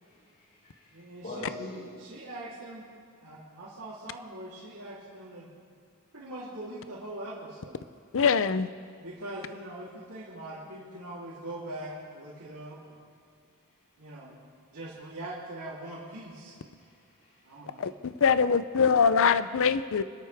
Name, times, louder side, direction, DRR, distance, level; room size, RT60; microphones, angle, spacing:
voice 1, 0.0-1.0 1.2-1.8 16.8-17.4, left 1 dB, 45° left, -10 dB, 4.6 m, -43 dB
voice 2, 0.9-1.4 1.7-2.8 3.2-5.5 6.1-7.8 9.0-13.0 14.0-14.3 14.7-16.5 17.4-17.9, right 1 dB, 80° right, -10 dB, 3.4 m, -42 dB
voice 3, 8.1-8.7 17.8-20.0, left 6 dB, 65° left, 13 dB, 0.6 m, -23 dB
27.5 x 13.0 x 3.5 m, 2.3 s
head